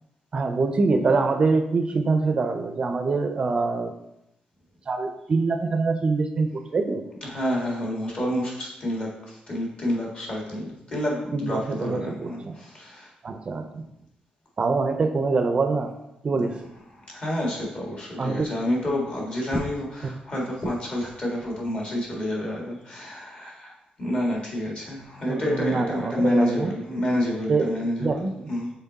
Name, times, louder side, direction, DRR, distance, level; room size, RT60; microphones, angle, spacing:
voice 1, 0.3-3.9 4.9-7.0 11.3-12.5 13.2-13.8 14.6-16.0 16.2-16.6 18.2-18.5 25.3-26.7 27.5-27.7 28.0-28.5, right 4 dB, 35° right, 7 dB, 0.4 m, -24 dB
voice 2, 7.2-13.1 17.0-28.7, left 1 dB, 40° left, -2 dB, 1.7 m, -28 dB
5.8 x 4.1 x 4.0 m, 0.84 s
wide cardioid pair, 160°, 3 cm